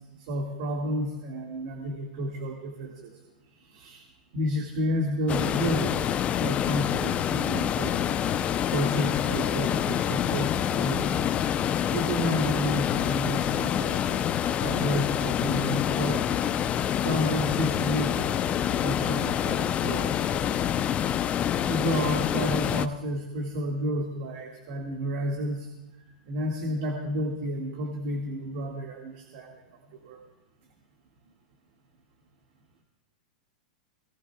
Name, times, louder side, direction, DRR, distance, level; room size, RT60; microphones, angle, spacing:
voice 1, 0.2-3.1 3.6-4.1 4.3-8.3 8.7-11.2 11.9-14.2 14.6-16.3 16.9-20.5 21.6-25.7 26.3-29.5 29.9-30.2, equal, 60° right, 1 dB, 1.9 m, -31 dB
sound 1, 5.3-22.9, left 10 dB, 30° left, 0.6 m, -27 dB
22.5 x 18.0 x 2.3 m, 1.0 s
hypercardioid pair, 105°, 4 cm